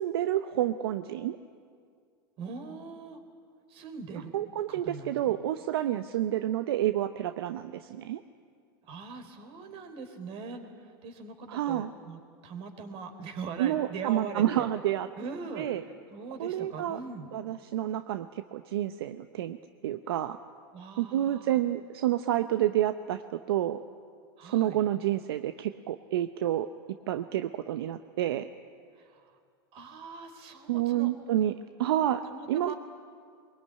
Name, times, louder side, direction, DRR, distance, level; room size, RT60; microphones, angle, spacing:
voice 1, 0.0-1.4 4.3-8.2 11.5-11.9 13.6-15.1 15.6-15.8 16.4-17.0 17.3-19.6 19.8-20.4 21.0-23.8 24.4-26.7 27.1-28.5 30.7-32.2 32.5-32.7, right 12 dB, 75° right, 10 dB, 0.9 m, -29 dB
voice 2, 2.4-3.2 3.7-4.3 4.7-5.3 8.9-10.6 11.0-14.7 15.2-15.7 16.1-17.3 20.7-21.6 24.4-24.8 29.0-29.3 29.7-31.1 32.2-32.8, right 5 dB, 45° right, 7 dB, 4.0 m, -41 dB
23.0 x 22.0 x 9.9 m, 2.2 s
hypercardioid pair, 105°, 13 cm